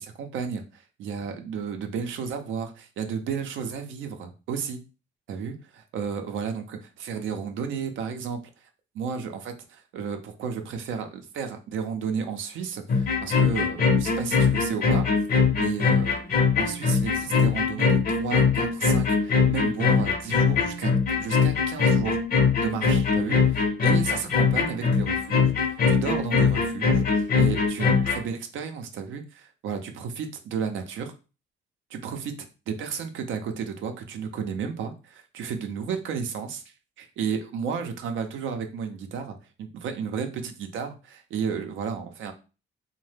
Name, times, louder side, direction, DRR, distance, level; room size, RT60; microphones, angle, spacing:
voice 1, 0.0-4.8 5.3-8.4 8.9-15.1 15.5-16.1 16.6-22.2 22.6-23.4 23.8-31.1 31.9-32.3 32.7-36.6 37.0-42.3, right 6 dB, 75° right, 6 dB, 0.5 m, -33 dB
sound 1, 12.9-28.2, left 5 dB, 50° left, 0.7 m, -22 dB
2.7 x 2.1 x 3.3 m, 0.32 s
cardioid pair, 90°, 20 cm